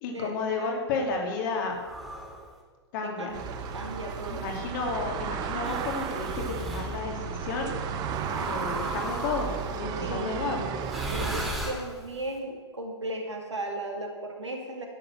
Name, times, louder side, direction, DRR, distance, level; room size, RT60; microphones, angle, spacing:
voice 1, 0.0-1.8 2.9-3.4 4.3-7.8 8.4-10.6, left 4 dB, 45° left, 2 dB, 2.6 m, -32 dB
voice 2, 0.6-1.1 3.0-4.4 10.0-10.6 11.1-14.9, right 2 dB, 80° right, 1 dB, 2.5 m, -36 dB
sound 1, 1.8-2.5 3.4-4.6 5.6-6.9 8.2-9.7 10.8-12.2, equal, ahead, 2.9 m, -37 dB
sound 2, 3.3-11.5, right 7 dB, 25° right, 1.0 m, -34 dB
11.5 x 7.8 x 7.7 m, 1.5 s
figure-of-eight pair, 110°, 15 cm